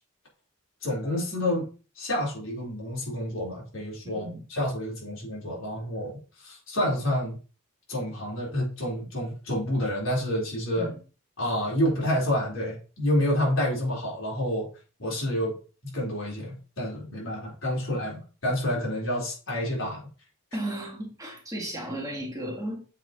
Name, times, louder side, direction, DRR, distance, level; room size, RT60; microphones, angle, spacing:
voice 1, 0.8-1.7 2.0-7.4 7.9-10.9 11.4-14.7 15.0-15.6 15.8-20.0, left 1 dB, 65° left, -4 dB, 4.1 m, -29 dB
voice 2, 4.0-4.4 10.8-11.0 20.5-22.9, right 1 dB, 15° right, 0 dB, 1.6 m, -34 dB
7.5 x 4.6 x 4.1 m, 0.36 s
head